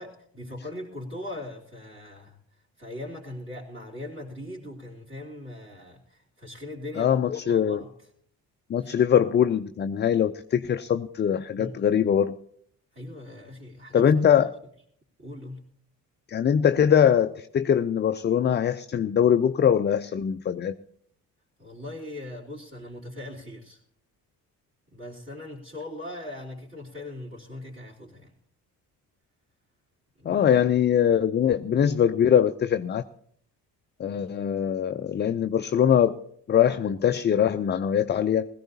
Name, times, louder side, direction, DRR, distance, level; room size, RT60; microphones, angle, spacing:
voice 1, 0.0-2.4 2.8-7.9 8.8-8.9 11.6-11.8 12.9-14.2 15.2-15.7 21.6-23.8 24.9-28.3 30.2-30.5 34.1-34.4, left 1 dB, 30° right, -8 dB, 3.5 m, -40 dB
voice 2, 7.0-7.8 8.7-12.3 13.9-14.5 16.3-20.8 30.3-33.0 34.0-36.2 36.5-38.5, left 8 dB, 25° left, 9 dB, 0.5 m, -22 dB
20.5 x 14.5 x 2.8 m, 0.65 s
figure-of-eight pair, 50°, 49 cm